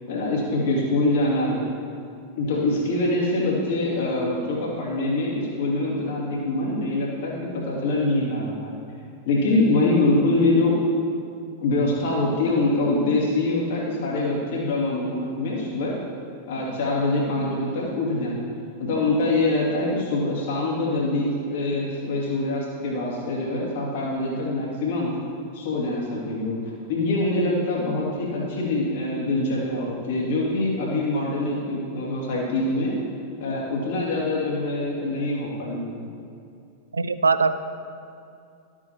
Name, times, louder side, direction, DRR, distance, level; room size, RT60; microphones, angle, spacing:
voice 1, 0.1-1.7 2.4-8.8 9.3-10.8 11.6-15.9 16.5-18.5 18.8-25.1 25.5-26.6 26.9-32.9 33.4-36.0, left 2 dB, 55° left, -4 dB, 2.4 m, -24 dB
voice 2, 36.9-37.6, right 4 dB, 75° right, 12 dB, 0.3 m, -21 dB
13.0 x 8.3 x 2.9 m, 2.4 s
figure-of-eight pair, 90°, 0 cm